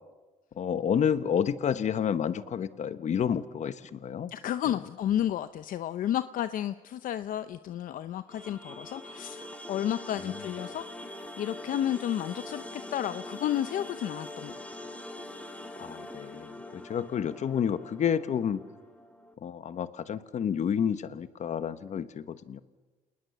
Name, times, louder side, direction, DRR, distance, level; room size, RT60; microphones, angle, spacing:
voice 1, 0.6-4.3 10.2-10.5 15.8-18.6 19.4-22.6, left 8 dB, 55° left, 13 dB, 1.2 m, -30 dB
voice 2, 4.3-10.8 11.4-14.8, left 11 dB, 75° left, 12 dB, 0.7 m, -32 dB
sound 1, 8.3-19.3, left 1 dB, 10° left, 2.3 m, -43 dB
28.5 x 19.5 x 7.2 m, 1.3 s
cardioid pair, 95°, 14 cm